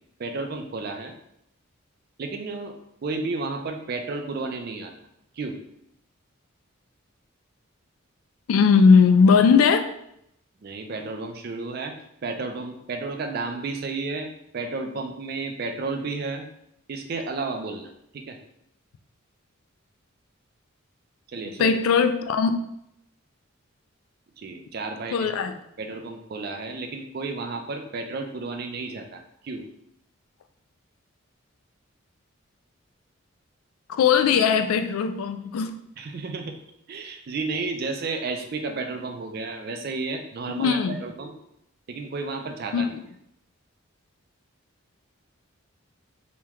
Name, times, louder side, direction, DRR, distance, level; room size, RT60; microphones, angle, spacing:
voice 1, 0.2-1.1 2.2-2.8 3.0-4.9 5.3-5.6 10.6-12.0 12.2-14.3 14.5-16.5 16.9-18.4 21.3-21.7 24.4-25.3 25.8-29.7 36.0-36.6 36.9-41.3 41.9-42.9, right 3 dB, 45° right, 5 dB, 0.3 m, -32 dB
voice 2, 8.5-9.8 21.6-22.5 25.1-25.5 33.9-35.7 40.5-41.0 42.7-42.9, left 5 dB, 80° left, 9 dB, 0.3 m, -19 dB
2.9 x 2.2 x 3.5 m, 0.76 s
head